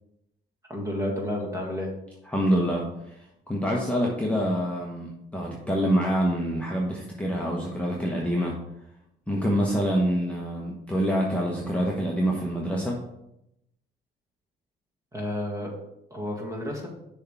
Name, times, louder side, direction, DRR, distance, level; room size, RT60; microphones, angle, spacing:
voice 1, 0.7-1.9 15.1-15.7 16.1-16.9, left 1 dB, 15° right, -1 dB, 1.9 m, -31 dB
voice 2, 2.3-8.5 9.3-13.0, equal, 5° left, -2 dB, 1.0 m, -26 dB
6.3 x 3.5 x 5.6 m, 0.84 s
cardioid pair, 90°, 20 cm